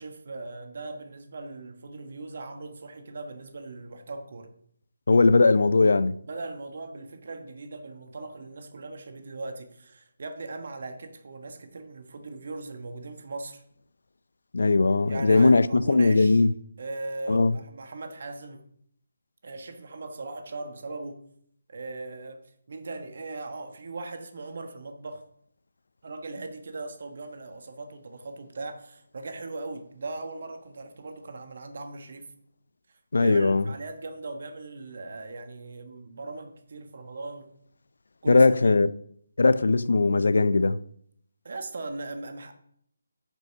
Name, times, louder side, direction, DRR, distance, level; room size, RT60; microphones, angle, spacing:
voice 1, 0.0-4.5 6.2-13.6 15.1-16.4 16.8-18.7 19.4-21.2 21.7-22.4 22.7-25.2 26.0-32.3 33.2-37.5 38.2-38.7 41.4-42.5, right 2 dB, 55° right, 1.3 m, -39 dB
voice 2, 5.1-6.2 14.5-16.5 17.3-17.6 33.1-33.6 38.3-38.9 39.4-40.8, left 3 dB, 70° left, 0.5 m, -19 dB
9.4 x 5.4 x 6.6 m
figure-of-eight pair, 160°, 0 cm